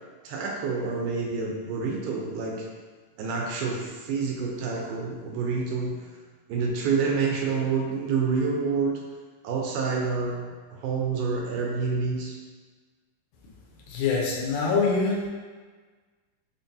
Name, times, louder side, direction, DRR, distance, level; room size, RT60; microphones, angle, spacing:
voice 1, 0.2-2.7 3.2-6.0 6.5-9.0 9.4-12.4, right 4 dB, 85° right, -1 dB, 2.2 m, -28 dB
voice 2, 13.9-15.3, left 4 dB, 75° left, -3 dB, 2.0 m, -24 dB
5.8 x 2.2 x 2.7 m, 1.5 s
omnidirectional pair, 3.8 m